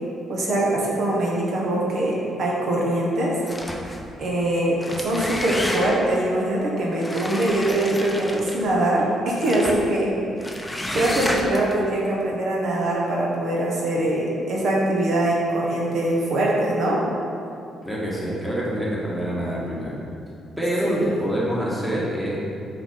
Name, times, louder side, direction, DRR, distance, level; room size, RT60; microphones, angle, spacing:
voice 1, 0.3-3.4 4.2-10.2 10.9-17.1 20.8-21.2, right 1 dB, 65° right, -3 dB, 1.4 m, -23 dB
sound 1, 3.4-4.1 4.7-6.2 7.0-8.7 9.4-9.9 10.4-11.7, left 1 dB, 10° left, 0.7 m, -30 dB
voice 2, 17.8-20.0 20.6-22.4, equal, 5° right, -6 dB, 1.8 m, -26 dB
6.0 x 4.9 x 5.6 m, 2.5 s
cardioid pair, 90°, 0 cm